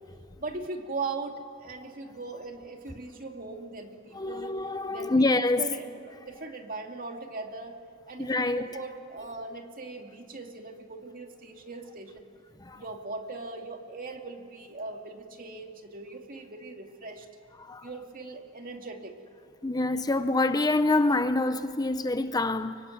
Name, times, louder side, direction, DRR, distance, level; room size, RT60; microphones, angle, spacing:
voice 1, 0.4-4.6 4.9-7.8 8.1-12.3 12.7-17.3 17.8-19.1, right 3 dB, 45° right, 2.5 m, -39 dB
voice 2, 4.1-5.6 8.2-8.7 12.6-12.8 17.6-17.9 19.6-22.8, left 2 dB, 20° left, 0.7 m, -26 dB
24.0 x 24.0 x 9.4 m
head